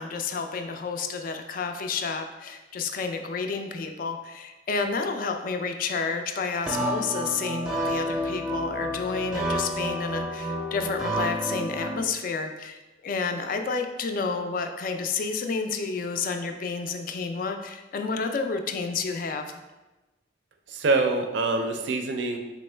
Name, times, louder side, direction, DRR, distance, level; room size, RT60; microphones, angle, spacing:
voice 1, 0.0-19.5, left 4 dB, 45° left, 6 dB, 0.3 m, -30 dB
sound 1, 6.7-12.0, equal, 5° right, 0.6 m, -30 dB
voice 2, 20.7-22.4, right 3 dB, 65° right, 5 dB, 0.4 m, -25 dB
3.6 x 3.0 x 3.2 m, 1.1 s
head